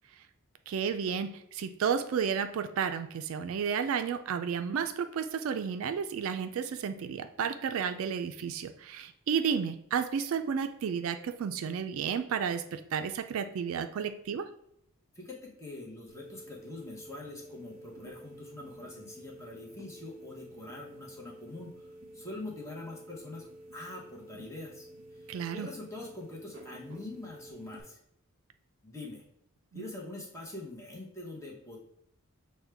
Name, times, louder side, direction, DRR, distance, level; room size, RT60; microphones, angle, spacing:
voice 1, 0.7-14.5 25.3-25.7 29.7-29.9, right 7 dB, 65° right, 9 dB, 0.3 m, -32 dB
voice 2, 15.1-28.0 28.8-29.2 29.7-31.8, left 2 dB, 15° left, -2 dB, 0.9 m, -44 dB
sound 1, 16.1-27.8, right 1 dB, 40° right, 1.0 m, -50 dB
6.2 x 2.2 x 3.3 m, 0.75 s
head